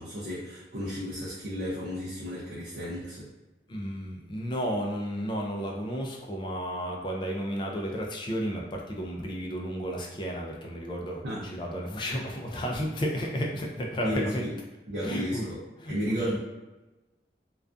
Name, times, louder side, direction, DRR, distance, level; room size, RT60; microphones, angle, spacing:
voice 1, 0.0-3.3 11.2-11.5 14.0-14.5 14.9-15.6 15.9-16.4, equal, 70° right, -8 dB, 0.5 m, -33 dB
voice 2, 3.7-14.5 15.0-15.5 15.8-16.4, equal, 25° left, 0 dB, 0.3 m, -32 dB
2.3 x 2.2 x 2.4 m, 1.1 s
head